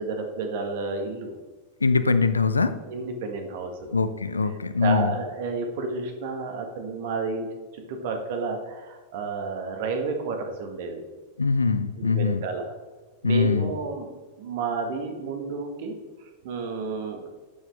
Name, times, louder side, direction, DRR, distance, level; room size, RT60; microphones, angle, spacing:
voice 1, 0.0-1.3 2.9-3.9 4.8-7.5 7.7-11.0 12.0-12.7 13.2-14.1 14.4-16.0 16.4-17.3, right 4 dB, 50° right, 4 dB, 1.7 m, -31 dB
voice 2, 1.8-2.7 3.9-5.1 11.4-12.5 13.2-13.7, left 4 dB, 75° left, 12 dB, 0.6 m, -22 dB
11.5 x 7.4 x 3.5 m, 1.2 s
figure-of-eight pair, 90°, 0 cm